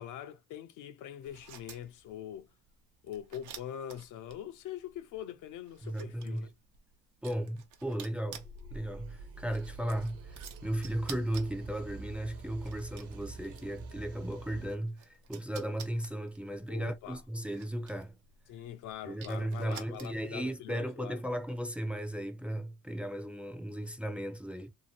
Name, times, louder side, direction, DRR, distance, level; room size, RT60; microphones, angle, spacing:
voice 1, 0.0-2.5 3.0-6.5 16.7-17.2 18.5-21.2, left 10 dB, 85° left, 0.5 m, -43 dB
sound 1, 1.2-20.4, right 8 dB, 80° right, 0.7 m, -53 dB
voice 2, 5.8-6.5 7.2-18.1 19.0-24.7, right 1 dB, 5° right, 0.4 m, -36 dB
sound 2, 8.4-14.7, right 3 dB, 50° right, 0.8 m, -46 dB
2.7 x 2.5 x 2.8 m
cardioid pair, 90°, 30 cm